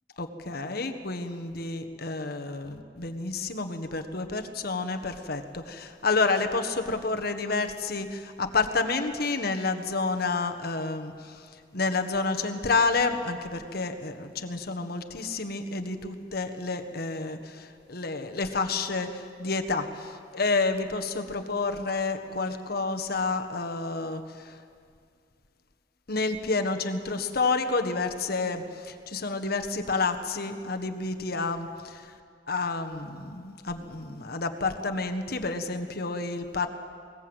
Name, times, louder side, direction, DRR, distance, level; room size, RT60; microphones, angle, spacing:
voice 1, 0.2-11.4 11.7-20.1 20.3-24.5 26.1-32.0 32.5-36.7, left 3 dB, 60° left, 6 dB, 1.5 m, -29 dB
21.5 x 20.0 x 8.0 m, 2.2 s
head